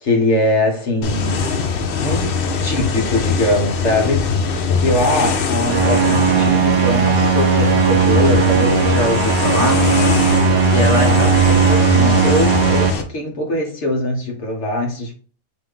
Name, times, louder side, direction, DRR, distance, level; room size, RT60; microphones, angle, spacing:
voice 1, 0.0-1.4 2.0-4.2 4.8-9.8 10.7-15.1, left 1 dB, 50° left, 1.2 m, -21 dB
sound 1, 1.0-13.0, left 5 dB, 80° left, 0.5 m, -21 dB
sound 2, 5.6-12.9, right 6 dB, 75° right, 0.5 m, -16 dB
3.4 x 3.1 x 3.8 m
omnidirectional pair, 1.7 m